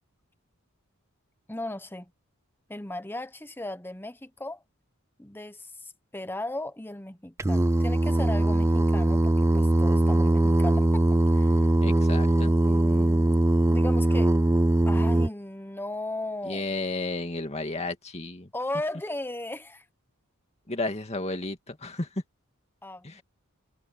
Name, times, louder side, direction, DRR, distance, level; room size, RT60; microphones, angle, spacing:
voice 1, 1.5-2.1 2.7-4.6 5.2-11.8 12.6-13.4 13.7-14.3 14.9-16.6 18.5-19.8 22.8-23.2, left 1 dB, 10° left, 1.0 m, -36 dB
Singing, 7.4-15.3, right 1 dB, 15° right, 0.4 m, -21 dB
voice 2, 11.8-12.5 16.4-18.5 20.7-22.2 23.0-23.2, left 2 dB, 30° left, 2.3 m, -32 dB
head